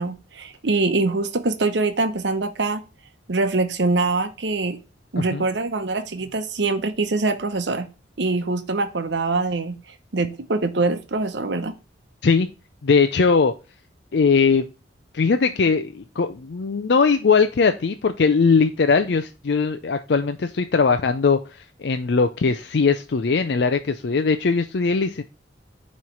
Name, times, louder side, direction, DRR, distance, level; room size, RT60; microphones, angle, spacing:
voice 1, 0.0-2.8 3.3-4.8 5.1-7.9 8.2-9.8 10.1-11.7, right 3 dB, 70° right, 9 dB, 0.9 m, -24 dB
voice 2, 12.8-13.5 14.1-14.7 15.1-25.2, left 5 dB, 65° left, 7 dB, 0.5 m, -20 dB
9.4 x 3.2 x 4.4 m, 0.31 s
head